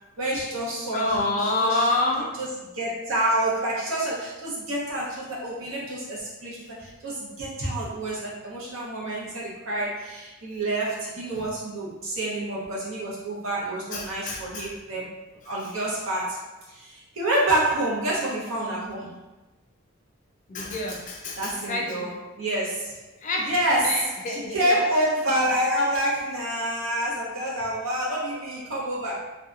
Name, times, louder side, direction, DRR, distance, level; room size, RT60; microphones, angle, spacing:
voice 1, 0.2-1.9 2.3-15.1 15.4-19.1 21.4-23.0 23.4-29.2, right 1 dB, 65° right, -5 dB, 0.8 m, -28 dB
voice 2, 0.9-2.3 11.3-11.4 13.9-14.7 20.5-22.0 23.2-23.5 23.8-24.6, left 2 dB, 35° left, -1 dB, 0.4 m, -27 dB
2.7 x 2.3 x 2.4 m, 1.1 s
head